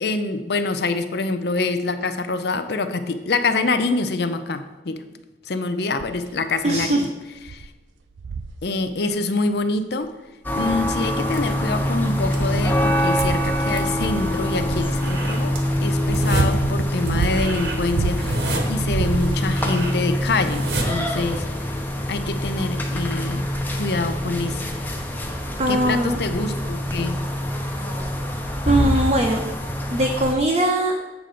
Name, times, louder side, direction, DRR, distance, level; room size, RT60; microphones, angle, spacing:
voice 1, 0.0-5.0 5.5-7.1 7.5-7.7 8.6-10.1 10.5-21.4 22.1-23.5 23.8-24.7 25.7-27.2, left 3 dB, 60° left, 10 dB, 0.6 m, -25 dB
sound 1, 6.0-6.3 6.9-7.0 7.4-7.7 8.2-8.6 10.0-10.1 10.9-11.6 12.1-14.9 15.7-18.4 18.8-19.7 20.5-20.6, right 4 dB, 85° right, 0.5 m, -29 dB
voice 2, 6.6-7.0 25.6-26.2 28.7-29.4 29.9-30.9, right 1 dB, 40° right, 0 dB, 0.7 m, -20 dB
sound 2, 10.4-30.3, equal, 10° left, 0.7 m, -25 dB
sound 3, 11.2-21.9, right 2 dB, 60° right, 1.1 m, -33 dB
8.1 x 3.8 x 6.7 m, 1.1 s
head